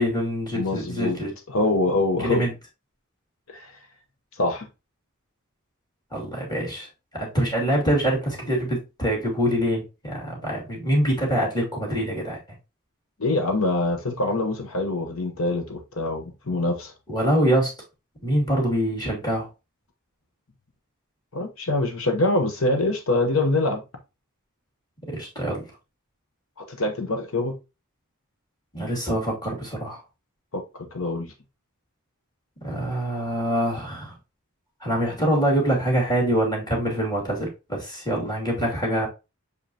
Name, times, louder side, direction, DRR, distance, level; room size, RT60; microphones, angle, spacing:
voice 1, 0.0-1.3 2.2-2.5 6.1-6.9 7.1-12.4 17.1-17.7 18.2-19.5 25.1-25.6 28.7-30.0 32.6-34.1 34.8-39.1, equal, 20° left, -3 dB, 2.6 m, -24 dB
voice 2, 0.5-1.2 1.5-2.5 3.5-3.7 4.4-4.7 13.2-16.9 21.3-23.8 26.7-27.5 30.5-31.3, left 2 dB, 75° left, 5 dB, 0.9 m, -24 dB
6.5 x 5.2 x 2.8 m, 0.27 s
head